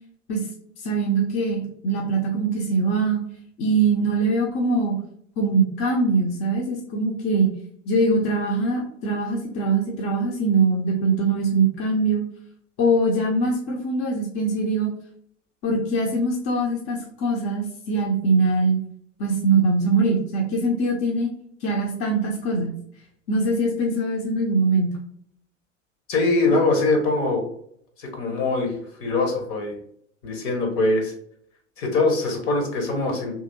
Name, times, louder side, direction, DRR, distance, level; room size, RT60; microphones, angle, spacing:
voice 1, 0.8-3.2 3.6-4.9 5.4-7.5 7.9-12.2 12.8-14.9 15.6-18.8 19.2-21.3 21.6-22.8 23.3-24.9, right 3 dB, 35° left, -1 dB, 0.7 m, -22 dB
voice 2, 26.1-27.4 28.0-28.7 29.0-29.8 30.2-31.1 31.8-33.3, left 2 dB, 55° left, 2 dB, 1.1 m, -22 dB
2.8 x 2.8 x 2.6 m, 0.67 s
figure-of-eight pair, 75°, 38 cm